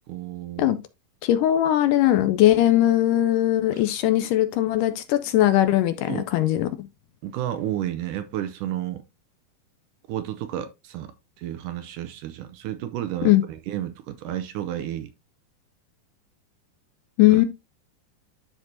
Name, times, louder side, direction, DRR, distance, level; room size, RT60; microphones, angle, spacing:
voice 1, 0.1-0.7 2.2-2.3 3.7-3.8 6.1-6.3 7.2-9.0 10.1-15.1 17.3-17.4, right 12 dB, 80° right, 2.0 m, -32 dB
voice 2, 1.2-6.9 13.3-13.4 17.2-17.5, left 13 dB, 80° left, 2.0 m, -20 dB
12.5 x 4.5 x 2.7 m
omnidirectional pair, 4.1 m